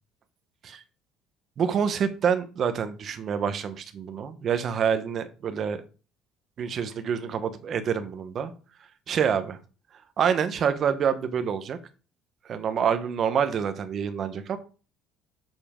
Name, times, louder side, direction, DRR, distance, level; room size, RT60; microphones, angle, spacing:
voice 1, 1.6-5.8 6.6-8.5 9.1-9.6 10.2-11.8 12.4-14.6, right 7 dB, 45° right, 10 dB, 1.1 m, -27 dB
7.7 x 6.9 x 3.8 m, 0.36 s
cardioid pair, 115°, 0 cm